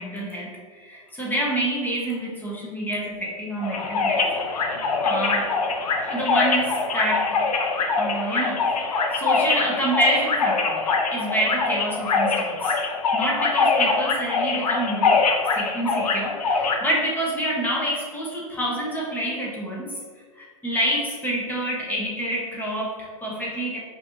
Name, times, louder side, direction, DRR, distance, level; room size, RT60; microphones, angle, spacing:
voice 1, 0.0-4.2 5.0-5.6 5.9-7.5 8.0-8.7 9.1-10.8 11.1-12.8 13.1-15.2 15.5-19.9 20.4-23.8, right 1 dB, 10° left, -4 dB, 0.8 m, -27 dB
sound 1, 3.6-16.8, left 4 dB, 85° left, 0.6 m, -23 dB
5.3 x 2.7 x 2.5 m, 1.6 s
hypercardioid pair, 125°, 19 cm